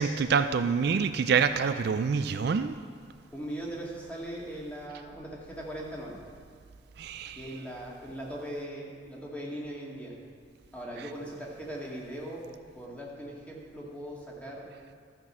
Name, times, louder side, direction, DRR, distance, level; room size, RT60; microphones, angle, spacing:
voice 1, 0.0-2.7 7.0-7.4, right 6 dB, 60° right, 10 dB, 0.4 m, -26 dB
voice 2, 3.3-6.2 7.4-10.1 10.7-12.5 12.8-14.7, right 1 dB, 10° left, -4 dB, 2.0 m, -39 dB
13.5 x 6.0 x 7.3 m, 2.1 s
head